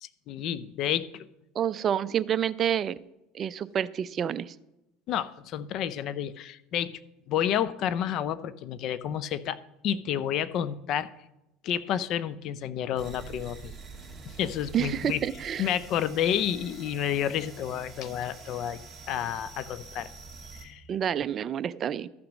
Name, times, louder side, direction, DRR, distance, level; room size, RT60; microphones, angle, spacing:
voice 1, 0.0-1.1 5.1-7.0 7.3-9.6 9.8-11.1 11.6-13.7 14.2-15.2 15.6-18.8 19.1-20.1 20.6-20.8, left 10 dB, 50° left, 16 dB, 0.6 m, -30 dB
voice 2, 1.6-3.0 3.3-4.5 14.7-15.7 20.9-22.1, right 9 dB, 35° right, 15 dB, 0.4 m, -28 dB
sound 1, 12.9-20.7, right 4 dB, 20° right, 2.5 m, -46 dB
13.0 x 6.0 x 6.3 m, 0.92 s
supercardioid pair, 110°, 0 cm